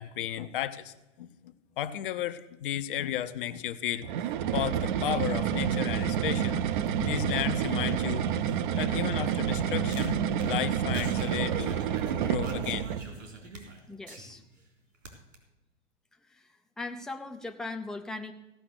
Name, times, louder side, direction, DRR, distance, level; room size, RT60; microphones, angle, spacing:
voice 1, 0.0-4.1 4.5-8.3 8.7-11.8 12.1-13.0, left 11 dB, 45° left, 11 dB, 0.8 m, -34 dB
sound 1, 4.0-13.1, right 9 dB, 40° right, 0.7 m, -29 dB
sound 2, 8.7-14.6 14.9-15.3, right 3 dB, 70° right, 3.5 m, -46 dB
voice 2, 13.9-14.4 16.2-18.3, left 3 dB, ahead, 4 dB, 0.5 m, -39 dB
16.5 x 5.7 x 7.9 m, 1.1 s
figure-of-eight pair, 110°, 38 cm